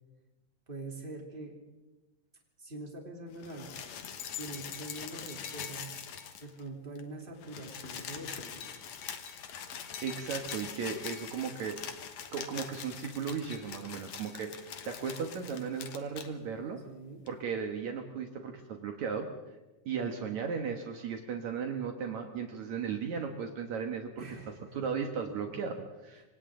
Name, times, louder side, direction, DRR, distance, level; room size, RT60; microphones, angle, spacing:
voice 1, 0.7-1.5 2.6-3.8 4.4-5.9 6.4-8.7 16.8-17.2 24.2-24.9 25.5-25.6, right 2 dB, 15° right, 0 dB, 3.2 m, -44 dB
sound 1, 3.3-6.7 7.0-7.1 7.3-16.3 17.3-17.4, left 8 dB, 60° left, 2.4 m, -43 dB
voice 2, 10.0-11.8 12.3-16.8 17.3-19.3 19.9-24.2 24.7-26.2, right 6 dB, 65° right, 3 dB, 2.6 m, -36 dB
27.0 x 25.5 x 3.9 m, 1.1 s
omnidirectional pair, 3.7 m